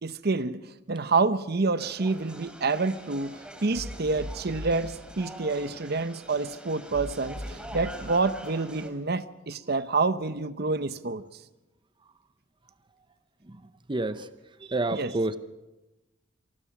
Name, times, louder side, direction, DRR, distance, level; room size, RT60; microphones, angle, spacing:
voice 1, 0.0-11.2 14.9-15.1, right 3 dB, 55° right, 13 dB, 0.9 m, -28 dB
sound 1, 1.8-8.9, equal, 5° right, 3.5 m, -41 dB
voice 2, 13.9-14.2 14.7-15.4, right 2 dB, 25° right, 11 dB, 0.8 m, -27 dB
27.5 x 20.5 x 6.0 m, 1.1 s
head